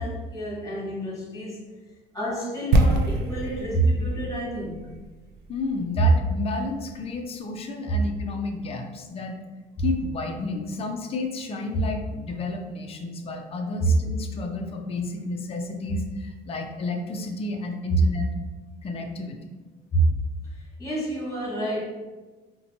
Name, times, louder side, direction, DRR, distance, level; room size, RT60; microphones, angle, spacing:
voice 1, 0.0-1.6 2.1-4.9 13.8-13.9 19.9-20.1 20.8-21.8, right 2 dB, 20° left, -4 dB, 1.3 m, -27 dB
sound 1, 2.7-6.7 6.9-7.0, right 2 dB, 75° right, 0.5 m, -25 dB
voice 2, 5.5-9.4 9.8-18.3 18.8-19.6, left 3 dB, 35° left, 3 dB, 0.5 m, -31 dB
4.1 x 2.2 x 2.8 m, 1.3 s
cardioid pair, 110°, 17 cm